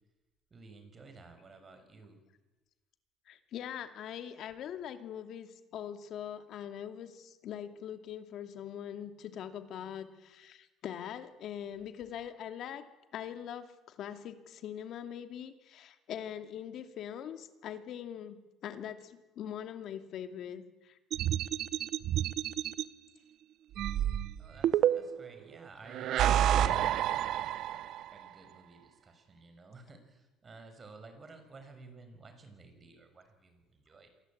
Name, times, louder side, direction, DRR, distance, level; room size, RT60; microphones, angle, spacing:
voice 1, 0.5-2.2 24.4-34.1, right 3 dB, 25° right, 7 dB, 6.0 m, -54 dB
voice 2, 3.3-12.8 13.1-18.4 18.6-21.0, left 9 dB, 50° left, 8 dB, 2.6 m, -42 dB
Bad Choice, 21.1-22.8 23.8-25.3 25.9-28.1, right 11 dB, 55° right, 0.9 m, -29 dB
28.0 x 23.0 x 8.8 m, 1.1 s
cardioid pair, 140°, 0 cm